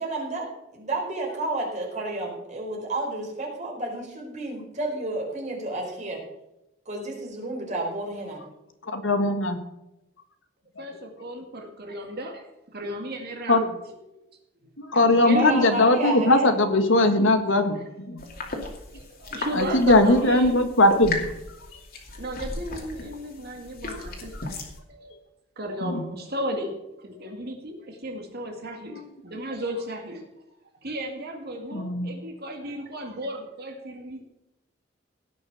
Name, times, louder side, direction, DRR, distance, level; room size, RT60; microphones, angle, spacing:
voice 1, 0.0-6.2 6.9-8.4 15.3-16.5, right 2 dB, 40° right, -1 dB, 4.5 m, -31 dB
voice 2, 8.9-9.6 13.5-13.7 14.8-17.8 18.1-18.2 19.5-21.2 25.8-26.0 31.7-32.1, left 2 dB, 75° left, 7 dB, 1.6 m, -20 dB
voice 3, 10.8-12.5 12.7-14.2 14.8-15.6 17.1-17.2 17.7-17.8 18.1-18.5 18.9-20.6 22.2-24.5 24.9-25.1 25.6-30.2 30.8-34.2, equal, 55° right, 3 dB, 2.1 m, -34 dB
sound 1, 18.2-24.8, left 2 dB, 50° left, 2.6 m, -36 dB
17.5 x 6.4 x 6.2 m, 0.90 s
head